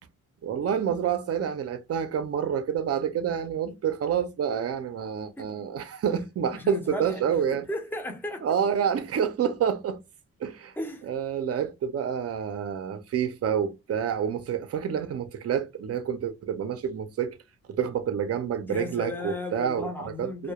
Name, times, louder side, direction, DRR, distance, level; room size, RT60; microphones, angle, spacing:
voice 1, 0.4-7.7 8.4-10.0 10.4-10.7 11.1-17.4 17.7-20.5, right 8 dB, 50° right, 0.4 m, -28 dB
voice 2, 6.5-8.5 10.8-11.1 18.7-20.5, left 2 dB, 5° left, 0.5 m, -35 dB
2.2 x 2.1 x 2.8 m
wide cardioid pair, 170°, 32 cm